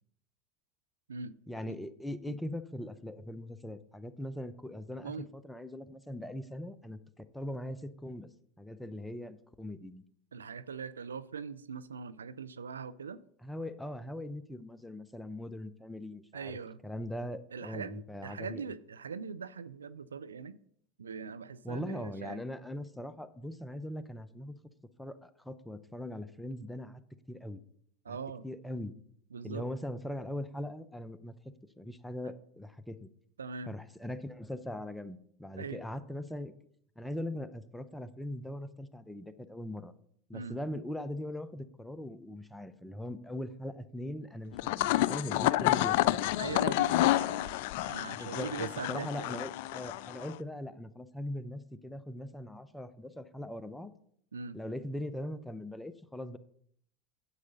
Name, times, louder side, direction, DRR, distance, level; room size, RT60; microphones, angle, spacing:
voice 1, 1.5-8.3 8.6-10.0 13.4-16.6 16.8-18.6 21.6-24.5 25.0-27.0 27.3-27.6 28.1-28.2 28.4-28.9 29.4-31.3 31.8-33.1 33.7-36.5 37.0-39.9 40.3-46.2 48.1-53.9 54.5-56.4, left 1 dB, 5° left, 11 dB, 0.7 m, -40 dB
voice 2, 10.3-13.2 16.3-16.8 17.5-20.6 21.0-22.4 28.0-28.5 29.3-29.6 33.4-33.7 35.6-35.8 40.3-40.6 46.4-49.4 54.3-54.6, right 5 dB, 90° right, 16 dB, 0.4 m, -41 dB
sound 1, 44.5-50.3, left 16 dB, 65° left, 0.3 m, -29 dB
9.5 x 7.8 x 3.9 m, 0.65 s
hypercardioid pair, 85°, 0 cm